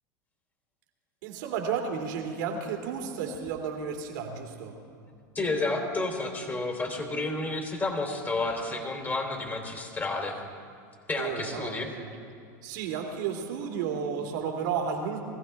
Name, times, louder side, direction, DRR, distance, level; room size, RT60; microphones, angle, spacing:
voice 1, 1.2-4.8 11.2-12.1 12.6-15.2, right 6 dB, 70° right, 2 dB, 2.6 m, -32 dB
voice 2, 5.3-10.4 11.1-11.9, left 2 dB, 20° left, 1 dB, 3.2 m, -31 dB
21.5 x 15.0 x 3.5 m, 2.4 s
supercardioid pair, 110°, 10 cm